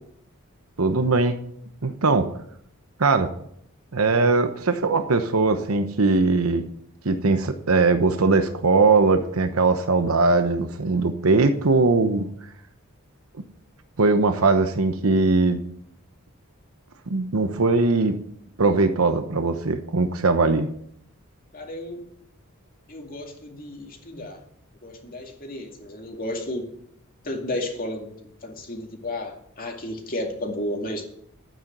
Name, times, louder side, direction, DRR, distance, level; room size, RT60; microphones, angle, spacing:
voice 1, 0.8-1.4 1.8-2.3 3.0-3.3 3.9-6.6 7.0-12.3 14.0-15.6 17.1-18.2 18.6-20.7, right 3 dB, 85° right, 8 dB, 0.9 m, -20 dB
voice 2, 21.5-22.0 22.9-24.4 24.8-26.6 27.2-28.1 28.4-31.0, left 1 dB, 45° left, 2 dB, 2.3 m, -32 dB
12.0 x 9.3 x 6.1 m, 0.68 s
head